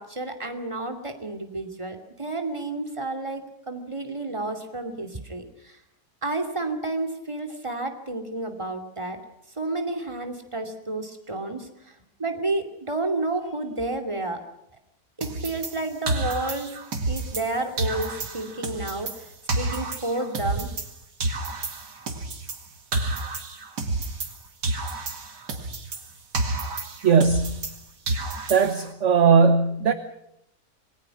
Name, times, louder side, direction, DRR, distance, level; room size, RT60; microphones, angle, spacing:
voice 1, 0.0-5.8 6.2-9.2 9.6-14.4 15.2-16.8 17.1-20.7, right 2 dB, 15° right, 4 dB, 2.7 m, -31 dB
sound 1, 15.2-17.5 17.8-20.9 21.2-24.4 24.6-27.8 28.1-28.9, right 2 dB, 85° right, 2.8 m, -30 dB
voice 2, 27.0-27.7 28.5-29.9, right 5 dB, 50° right, 10 dB, 1.4 m, -19 dB
27.0 x 20.5 x 6.0 m, 0.77 s
omnidirectional pair, 1.8 m